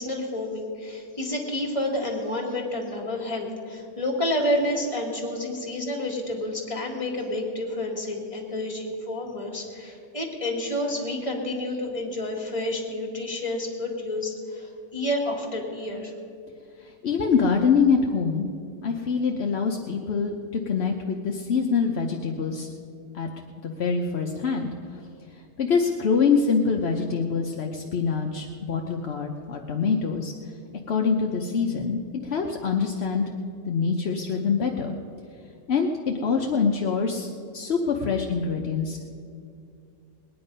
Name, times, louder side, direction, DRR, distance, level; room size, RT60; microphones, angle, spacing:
voice 1, 0.0-16.1, left 1 dB, 20° left, -1 dB, 2.0 m, -29 dB
voice 2, 17.0-18.5 18.8-22.7 23.1-23.3 23.6-24.7 25.6-30.3 30.9-33.2 33.6-34.9 35.7-39.1, left 5 dB, 55° left, 1 dB, 0.7 m, -25 dB
20.5 x 9.7 x 5.4 m, 2.4 s
omnidirectional pair, 2.0 m